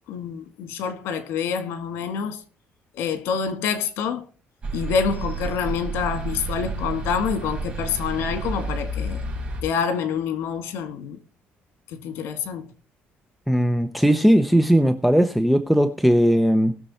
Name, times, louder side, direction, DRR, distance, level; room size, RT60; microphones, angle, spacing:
voice 1, 0.1-2.4 2.9-4.2 4.7-9.2 9.6-11.2 11.9-12.7, left 6 dB, 90° left, 2.0 m, -27 dB
sound 1, 4.6-9.6, right 2 dB, 25° right, 4.6 m, -30 dB
voice 2, 13.5-16.7, equal, ahead, 0.8 m, -18 dB
19.5 x 6.8 x 4.3 m
cardioid pair, 160°, 4 cm